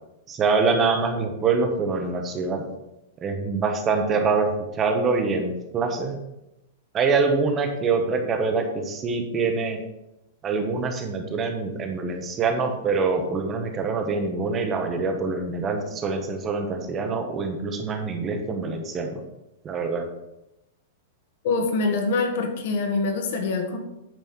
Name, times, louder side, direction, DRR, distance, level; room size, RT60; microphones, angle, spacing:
voice 1, 0.3-2.6 3.2-4.5 4.8-6.1 6.9-9.8 10.4-19.2 19.6-20.1, right 4 dB, 15° right, 5 dB, 0.9 m, -25 dB
voice 2, 21.4-23.8, left 3 dB, 50° left, 5 dB, 1.4 m, -24 dB
9.1 x 4.1 x 6.9 m, 0.91 s
supercardioid pair, 175°, 0 cm